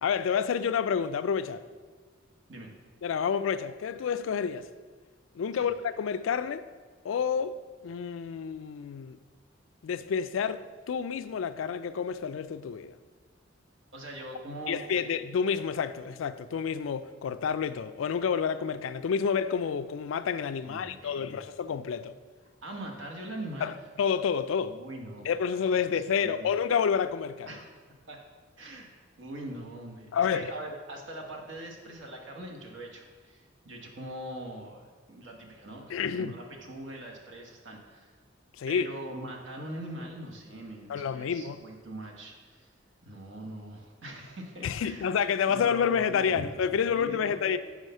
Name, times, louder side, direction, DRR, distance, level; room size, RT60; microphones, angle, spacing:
voice 1, 0.0-1.6 3.0-4.7 5.3-6.7 7.0-7.6 7.8-9.2 9.8-12.9 14.7-22.1 23.6-23.7 24.0-24.8 25.3-27.5 30.1-30.5 35.9-36.4 38.6-38.9 40.9-41.6 44.6-47.6, left 7 dB, 90° left, 0.3 m, -29 dB
voice 2, 13.9-15.1 20.6-21.4 22.6-23.7 24.7-26.5 27.5-27.7 28.1-28.2 28.6-28.9 29.2-38.1 38.7-42.7 43.0-45.1 45.5-47.6, right 1 dB, 70° right, 1.2 m, -42 dB
6.3 x 4.8 x 5.4 m
head